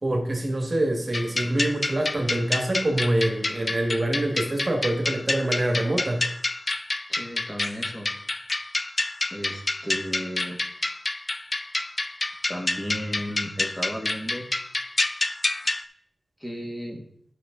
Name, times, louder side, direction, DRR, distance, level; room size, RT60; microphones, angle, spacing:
voice 1, 0.0-6.3, right 1 dB, 40° right, 3 dB, 1.6 m, -25 dB
sound 1, 1.1-15.8, left 2 dB, 40° left, 0.5 m, -28 dB
voice 2, 7.1-8.1 9.3-10.6 12.5-14.4 16.4-17.0, equal, 15° left, 1 dB, 1.8 m, -34 dB
10.5 x 6.0 x 3.7 m, 0.68 s
wide cardioid pair, 65°, 0 cm